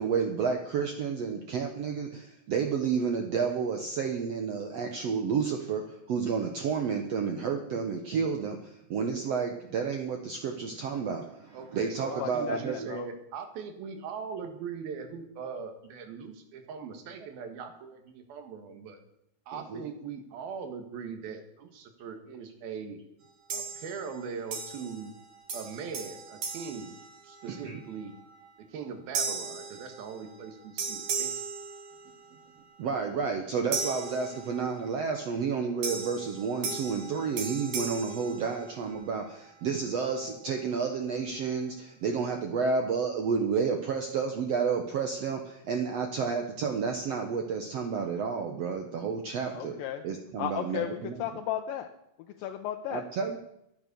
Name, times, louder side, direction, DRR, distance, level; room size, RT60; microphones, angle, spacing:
voice 1, 0.0-12.9 19.5-19.8 27.5-27.8 32.8-49.8 50.0-51.2 52.9-53.4, right 5 dB, 65° right, 4 dB, 1.7 m, -31 dB
voice 2, 11.5-19.0 19.5-23.0 23.5-25.1 25.5-26.9 27.2-28.1 28.7-31.3, right 6 dB, 90° right, 7 dB, 3.5 m, -40 dB
voice 3, 12.2-13.1 49.5-50.0 50.4-51.9 52.4-53.0, left 11 dB, 80° left, 4 dB, 2.5 m, -34 dB
sound 1, 23.5-24.2 24.5-25.2 25.5-27.7 28.2-28.4 29.1-30.5 30.8-32.4 33.7-34.9 35.8-39.1, right 4 dB, 50° right, 3.1 m, -37 dB
14.0 x 10.5 x 6.8 m, 0.80 s
omnidirectional pair, 4.2 m